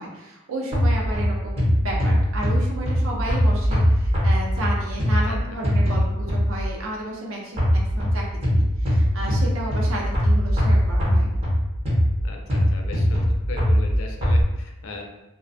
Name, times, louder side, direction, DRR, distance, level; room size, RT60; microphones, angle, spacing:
voice 1, 0.0-8.2 8.6-11.3, right 1 dB, 75° right, -2 dB, 0.6 m, -32 dB
sound 1, 0.7-6.8 7.6-14.4, equal, 30° right, 0.5 m, -21 dB
voice 2, 12.2-15.0, left 2 dB, 75° left, 2 dB, 0.4 m, -38 dB
2.4 x 2.1 x 2.5 m, 0.97 s
head